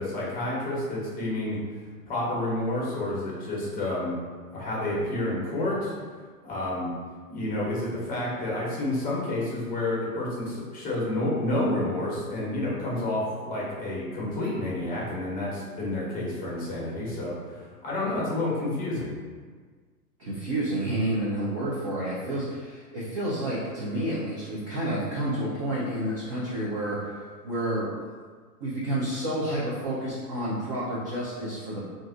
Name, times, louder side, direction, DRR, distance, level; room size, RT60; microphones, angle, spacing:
voice 1, 0.0-1.6 2.1-4.2 4.5-5.9 6.4-6.9 7.3-17.5 17.8-19.1, left 1 dB, 20° left, -6 dB, 0.9 m, -29 dB
voice 2, 20.2-27.1 27.4-27.9 28.6-31.8, right 1 dB, 25° right, -8 dB, 0.4 m, -30 dB
2.5 x 2.4 x 3.7 m, 1.5 s
figure-of-eight pair, 105°, 47 cm